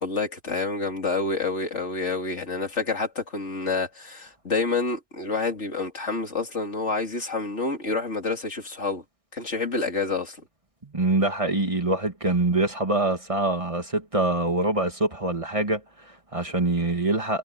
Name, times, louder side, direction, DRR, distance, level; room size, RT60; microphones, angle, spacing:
voice 1, 0.0-9.0 9.3-10.4, left 3 dB, 85° left, 3.7 m, -28 dB
voice 2, 10.8-17.4, right 2 dB, 30° right, 2.3 m, -25 dB
omnidirectional pair, 1.2 m